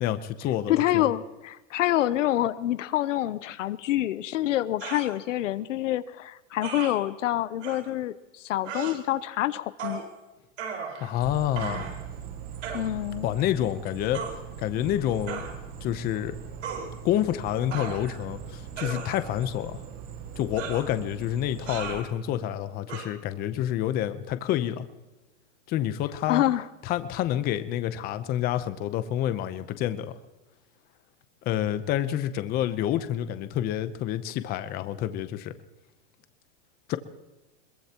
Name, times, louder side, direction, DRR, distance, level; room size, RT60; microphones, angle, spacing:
voice 1, 0.0-1.1 11.0-11.8 13.2-14.2 14.6-15.4 15.8-16.4 17.0-19.8 20.4-24.9 25.7-26.4 26.8-30.2 31.4-35.5 36.9-37.0, left 11 dB, 25° left, 12 dB, 0.7 m, -28 dB
voice 2, 0.7-10.0 12.7-13.3 26.3-26.6, left 13 dB, 80° left, 16 dB, 0.8 m, -27 dB
sound 1, 4.8-5.1 6.6-6.9 7.6-7.8 8.6-9.0 9.8-10.1 10.6-11.2 11.5-12.0 12.6-12.9 14.1-14.3 15.3-15.5 16.6-16.9 17.7-18.2 18.8-19.4 20.6-20.9 21.7-22.1 22.9-23.0, right 6 dB, 80° right, 5.0 m, -36 dB
sound 2, 11.2-22.0, right 7 dB, 25° right, 1.0 m, -41 dB
22.5 x 20.5 x 2.9 m, 1.1 s
supercardioid pair, 150°, 37 cm